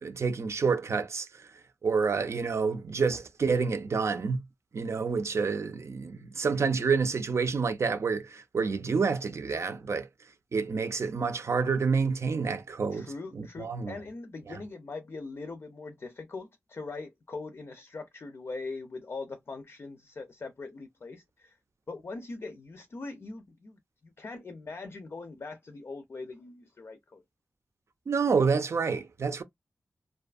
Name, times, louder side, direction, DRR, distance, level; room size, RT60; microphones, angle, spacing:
voice 1, 0.0-1.4 1.8-4.4 4.7-10.1 10.5-13.9 14.5-14.6 28.1-29.4, right 5 dB, 65° right, 0.5 m, -28 dB
voice 2, 12.9-21.6 21.9-27.2, left 3 dB, 55° left, 0.5 m, -41 dB
2.5 x 2.3 x 2.3 m
wide cardioid pair, 70°, 5 cm